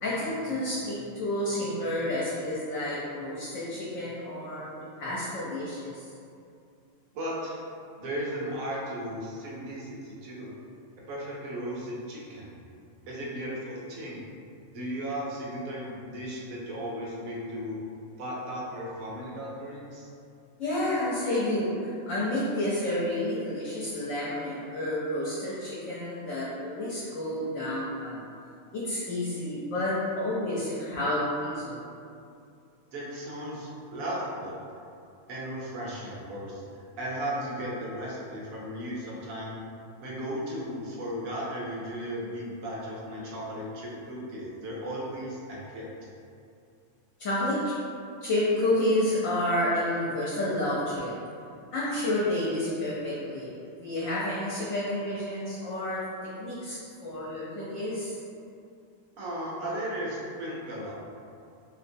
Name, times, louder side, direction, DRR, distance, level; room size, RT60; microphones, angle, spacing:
voice 1, 0.0-6.0 20.6-28.2 28.7-31.8 47.2-47.7 48.2-51.1 51.7-56.0 56.4-58.1, left 1 dB, 70° left, -7 dB, 1.0 m, -30 dB
voice 2, 7.1-7.6 8.0-10.5 11.1-12.6 13.1-14.2 14.7-17.8 18.2-20.1 32.9-34.6 35.3-36.6 37.0-39.6 40.0-45.9 59.2-60.9, equal, 75° right, -5 dB, 1.1 m, -35 dB
3.1 x 2.8 x 2.6 m, 2.5 s
omnidirectional pair, 1.5 m